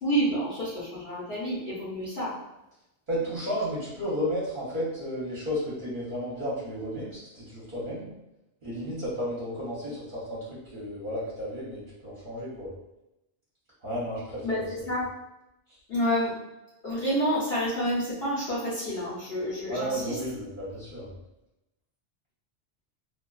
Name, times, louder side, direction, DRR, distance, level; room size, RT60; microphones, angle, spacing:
voice 1, 0.0-2.3 14.4-15.1 15.9-16.3 16.8-20.2, equal, 65° left, -10 dB, 1.0 m, -29 dB
voice 2, 3.1-8.1 8.6-12.7 13.8-14.6 19.7-21.1, equal, 50° right, -9 dB, 1.0 m, -33 dB
2.5 x 2.3 x 2.2 m, 0.91 s
omnidirectional pair, 1.2 m